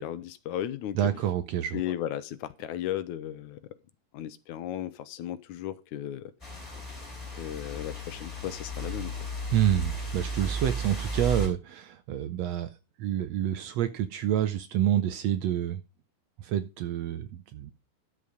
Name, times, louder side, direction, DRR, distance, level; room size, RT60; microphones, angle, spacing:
voice 1, 0.0-1.0 1.7-3.6 4.1-6.3 7.3-9.1, left 11 dB, 75° left, 2.1 m, -35 dB
voice 2, 0.9-1.8 9.5-12.7 13.0-15.8 16.4-17.7, right 11 dB, 75° right, 1.7 m, -28 dB
sound 1, 6.4-11.5, right 1 dB, 10° left, 5.0 m, -34 dB
11.5 x 7.5 x 5.1 m
omnidirectional pair, 3.6 m